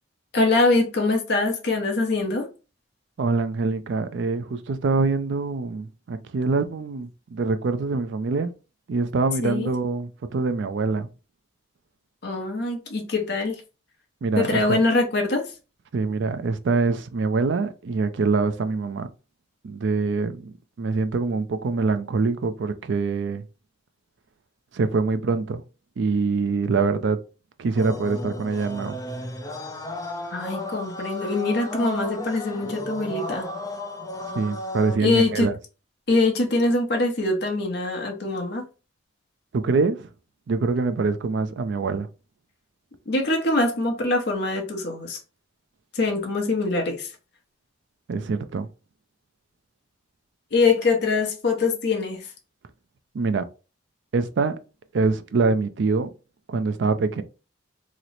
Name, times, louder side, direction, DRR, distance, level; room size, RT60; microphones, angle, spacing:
voice 1, 0.3-2.5 9.4-9.7 12.2-13.6 14.4-15.5 30.3-33.5 35.0-35.5 36.1-38.7 43.1-45.2 45.9-47.1 50.5-52.3, left 3 dB, 55° left, 0.8 m, -23 dB
voice 2, 3.2-8.5 8.9-11.1 14.2-14.8 15.9-19.1 19.6-23.4 24.7-25.6 26.0-27.2 27.6-29.0 34.4-35.5 39.5-40.1 40.5-42.1 48.1-48.7 53.1-53.4 54.1-54.5 54.9-56.1 56.5-57.2, right 4 dB, 65° right, 0.4 m, -24 dB
sound 1, 27.8-35.0, left 1 dB, 15° left, 0.4 m, -33 dB
3.0 x 2.0 x 3.9 m
head